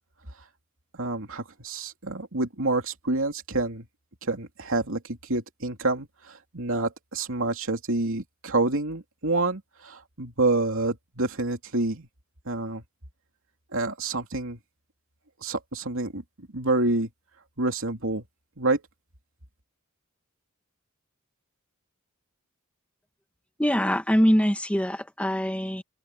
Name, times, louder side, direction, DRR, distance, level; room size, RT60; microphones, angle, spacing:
voice 1, 1.0-3.9 4.2-12.1 12.4-12.8 13.7-14.6 15.4-16.2 16.5-17.1 17.6-18.2 18.6-18.8, right 2 dB, 65° right, 3.2 m, -28 dB
voice 2, 23.6-25.8, equal, 5° left, 2.1 m, -23 dB
head